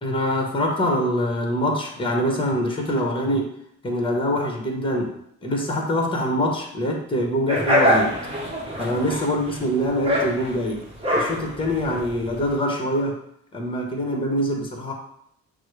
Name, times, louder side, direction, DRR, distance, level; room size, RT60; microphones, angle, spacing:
voice 1, 0.0-3.5 3.8-5.1 5.4-8.2 8.8-10.8 11.1-13.2 13.5-14.9, equal, 15° left, 1 dB, 1.0 m, -24 dB
sound 1, 7.5-12.5, equal, 20° right, 1.1 m, -24 dB
6.0 x 2.1 x 3.2 m, 0.71 s
cardioid pair, 90°, 30 cm